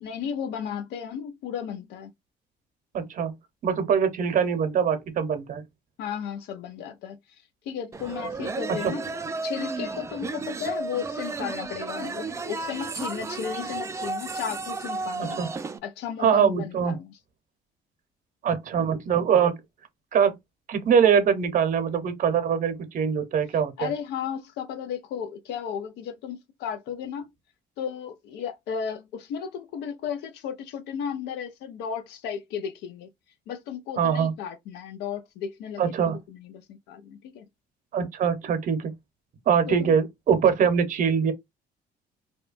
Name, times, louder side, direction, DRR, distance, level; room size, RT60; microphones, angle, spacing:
voice 1, 0.0-2.1 6.0-9.1 9.4-15.4 15.8-17.1 23.8-27.3 27.8-33.1 33.5-37.5 39.7-40.0, left 8 dB, 85° left, 0.5 m, -34 dB
voice 2, 2.9-3.4 3.6-5.6 8.7-8.9 15.2-15.5 16.2-17.0 18.4-19.6 20.1-20.4 20.7-23.9 34.0-34.3 35.8-36.2 37.9-38.9 39.5-41.3, right 7 dB, 50° right, 0.7 m, -23 dB
sound 1, 7.9-15.8, right 3 dB, 15° right, 0.3 m, -33 dB
2.7 x 2.2 x 2.4 m
cardioid pair, 110°, 17 cm